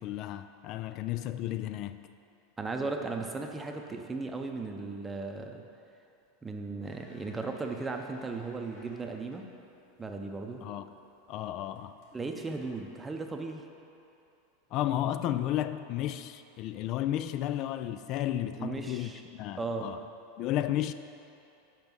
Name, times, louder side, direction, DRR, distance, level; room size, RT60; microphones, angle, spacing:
voice 1, 0.0-2.0 10.6-10.9 11.3-12.0 14.7-20.0 20.4-20.9, left 12 dB, 50° left, 12 dB, 0.3 m, -33 dB
voice 2, 2.6-5.6 6.4-9.5 10.0-10.6 12.1-13.6 18.6-19.2 19.6-19.9, right 3 dB, 15° right, 3 dB, 0.7 m, -36 dB
sound 1, 6.8-13.5, left 2 dB, 65° left, 1.6 m, -58 dB
5.4 x 5.2 x 6.1 m, 2.7 s
hypercardioid pair, 105°, 0 cm